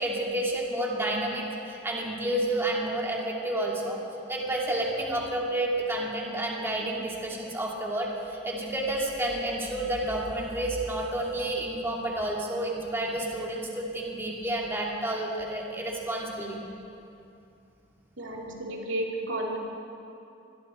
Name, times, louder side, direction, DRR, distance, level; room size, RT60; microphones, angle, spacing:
voice 1, 0.0-4.0 4.3-16.6, right 1 dB, 15° right, -3 dB, 2.9 m, -30 dB
voice 2, 18.2-19.6, right 1 dB, 70° right, -1 dB, 3.0 m, -32 dB
25.5 x 22.0 x 4.6 m, 2.7 s
head